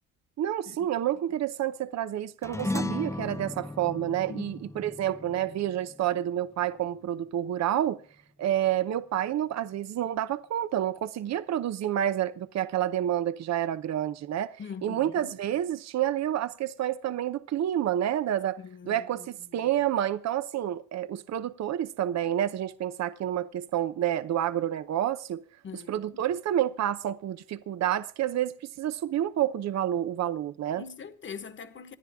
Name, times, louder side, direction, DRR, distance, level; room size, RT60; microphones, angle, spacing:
voice 1, 0.4-8.0 8.4-14.6 14.8-18.6 18.9-25.4 25.9-30.8, right 11 dB, 60° right, 0.8 m, -29 dB
sound 1, 2.4-7.1, left 2 dB, 10° left, 0.7 m, -36 dB
voice 2, 4.3-4.9 14.6-15.4 18.6-19.7 25.6-26.3 30.8-32.0, left 6 dB, 40° left, 1.4 m, -43 dB
26.5 x 10.0 x 3.6 m
cardioid pair, 90°, 30 cm